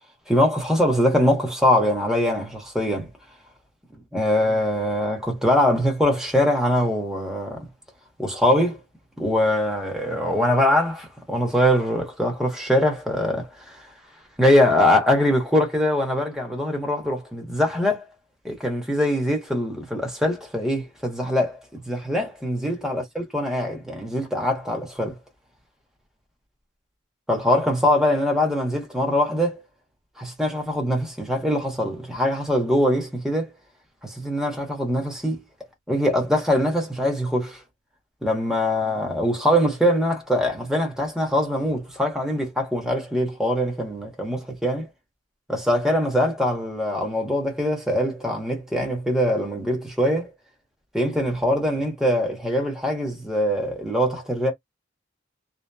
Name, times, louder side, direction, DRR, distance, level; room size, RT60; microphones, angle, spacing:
voice 1, 0.3-3.1 4.1-7.7 8.2-8.8 9.2-13.8 14.4-18.0 18.4-25.2 27.3-29.6 30.2-33.5 34.0-35.4 35.9-37.6 38.2-44.9 45.5-50.3 50.9-54.5, left 1 dB, 5° right, 0.9 m, -22 dB
2.8 x 2.0 x 2.3 m
head